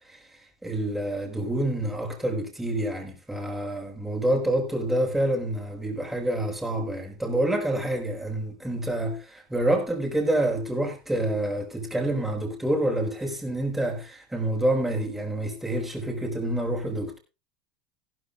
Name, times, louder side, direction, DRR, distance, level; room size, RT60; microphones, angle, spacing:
voice 1, 0.6-17.2, right 1 dB, 5° right, 5.4 m, -27 dB
15.5 x 13.0 x 2.5 m
hypercardioid pair, 95°, 3 cm